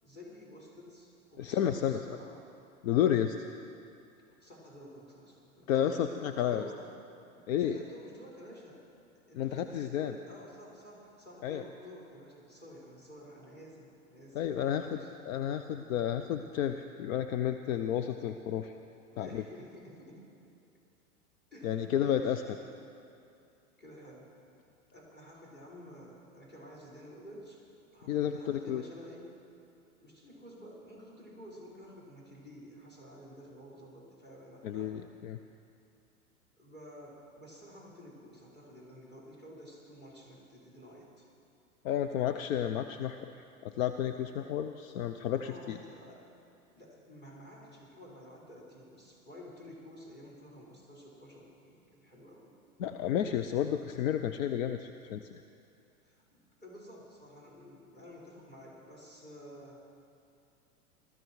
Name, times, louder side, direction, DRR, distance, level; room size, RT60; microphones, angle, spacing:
voice 1, 0.0-2.4 4.3-6.8 7.3-8.8 9.3-15.1 19.1-20.2 21.5-22.8 23.8-24.3 24.9-27.6 27.9-29.3 30.0-34.9 36.6-41.3 45.4-46.2 46.7-52.5 56.0-59.8, equal, 20° left, -5 dB, 5.1 m, -51 dB
voice 2, 1.4-2.2 2.8-3.4 5.7-6.6 7.5-7.8 9.3-10.1 11.4-11.6 14.3-15.0 15.3-18.7 19.2-19.4 21.6-22.4 28.1-28.8 34.6-35.4 41.8-43.2 43.6-45.8 52.8-55.4, left 10 dB, 60° left, 8 dB, 0.8 m, -31 dB
20.5 x 13.5 x 4.7 m, 2.6 s
hypercardioid pair, 100°, 44 cm